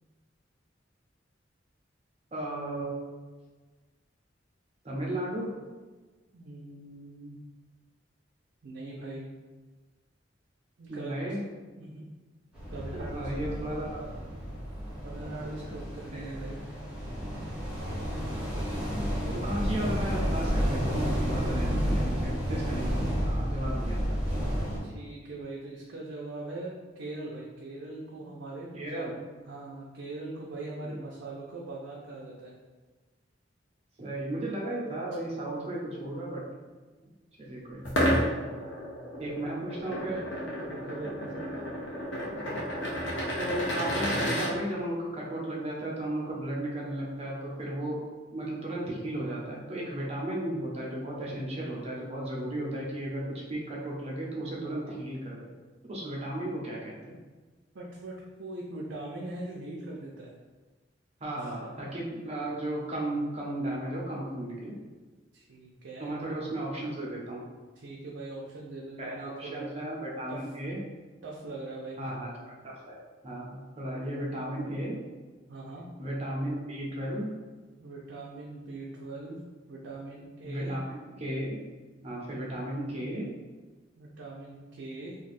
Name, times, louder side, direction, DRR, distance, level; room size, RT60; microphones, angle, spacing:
voice 1, 2.3-3.3 4.8-5.5 10.9-11.4 12.9-14.1 16.1-16.2 19.4-24.2 28.7-29.1 30.8-30.9 34.0-36.5 37.0-37.1 37.4-38.0 39.2-40.2 43.4-48.0 48.3-55.5 55.9-57.2 61.2-64.7 66.0-67.4 69.0-70.8 72.0-72.3 72.6-73.0 73.2-75.0 76.0-77.3 80.4-81.6 82.0-83.3, right 1 dB, 35° right, -3 dB, 0.7 m, -35 dB
voice 2, 6.3-7.4 8.6-9.3 10.8-11.2 11.8-12.1 12.7-13.6 15.0-16.6 18.5-18.7 19.2-19.5 21.4-21.5 24.8-29.1 29.5-32.5 38.5-39.2 40.7-41.5 57.7-60.3 61.4-61.8 65.3-66.1 67.8-69.7 70.3-70.4 71.2-72.3 75.5-75.9 77.8-80.8 84.0-85.2, right 2 dB, 75° right, -4 dB, 0.5 m, -41 dB
sound 1, 12.5-24.8, equal, 5° right, 0.9 m, -31 dB
sound 2, 37.8-44.5, equal, 70° left, 0.7 m, -31 dB
2.6 x 2.3 x 4.1 m, 1.3 s
head